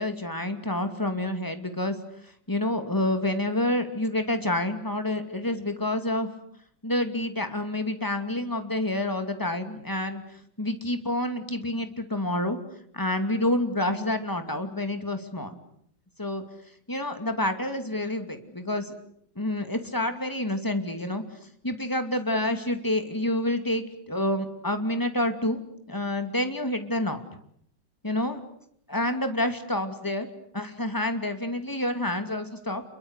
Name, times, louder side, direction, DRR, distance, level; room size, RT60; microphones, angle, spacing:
voice 1, 0.0-2.0 2.2-6.3 6.8-12.6 12.9-15.6 16.2-16.4 16.9-18.9 19.4-21.2 21.6-25.6 25.9-27.2 28.0-28.4 28.9-30.3 30.5-32.8, left 1 dB, 10° left, 8 dB, 2.5 m, -28 dB
28.5 x 23.0 x 8.2 m, 0.68 s
omnidirectional pair, 1.9 m